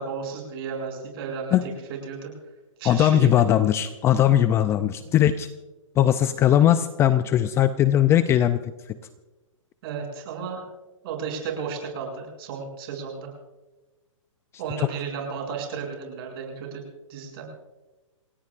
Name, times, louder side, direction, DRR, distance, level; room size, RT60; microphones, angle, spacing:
voice 1, 0.0-1.6 2.0-2.3 2.8-3.3 5.0-5.1 9.8-10.6 11.0-13.3 14.6-16.8 17.1-17.5, right 6 dB, 45° right, 1 dB, 7.3 m, -33 dB
voice 2, 2.8-5.5 6.0-8.6 8.9-9.0 14.8-14.9, left 11 dB, 15° left, 12 dB, 0.4 m, -19 dB
28.5 x 18.5 x 2.5 m, 1.2 s
hypercardioid pair, 140°, 17 cm